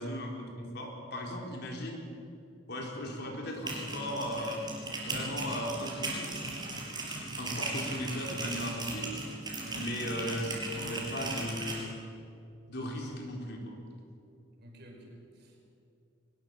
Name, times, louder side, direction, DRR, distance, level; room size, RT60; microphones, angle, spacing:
voice 1, 0.0-2.0 2.7-4.6 5.0-6.4 7.4-9.1 9.7-11.9 12.7-13.7, equal, 55° left, 0 dB, 4.4 m, -37 dB
sound 1, 3.5-11.8, right 2 dB, 20° right, 5.5 m, -37 dB
voice 2, 14.5-15.7, right 1 dB, 55° right, 1 dB, 5.3 m, -51 dB
22.5 x 20.5 x 7.2 m, 2.6 s
head